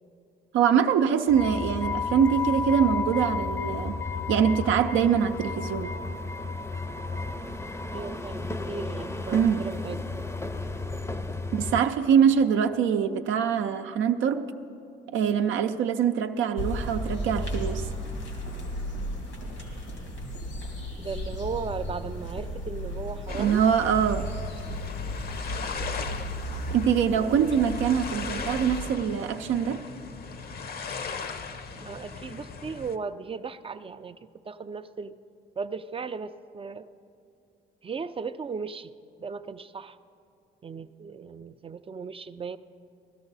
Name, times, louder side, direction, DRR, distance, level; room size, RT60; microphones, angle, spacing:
voice 1, 0.5-4.0 4.3-5.9 9.3-9.6 11.5-14.5 15.1-17.9 23.4-24.3 26.7-29.8, right 7 dB, 80° right, 5 dB, 0.5 m, -24 dB
sound 1, 1.3-11.8, left 4 dB, 15° left, 0.6 m, -33 dB
voice 2, 7.9-10.0 21.0-23.6 27.1-27.5 31.8-34.2 34.5-35.1 35.6-36.9 37.8-38.9 39.2-40.0 40.6-42.6, right 5 dB, 30° right, 11 dB, 0.4 m, -36 dB
sound 2, 16.6-28.8, equal, 85° left, 2.3 m, -34 dB
sound 3, 23.3-33.0, left 5 dB, 50° left, 0.8 m, -38 dB
17.5 x 12.5 x 4.0 m, 2.5 s
cardioid pair, 90°, 20 cm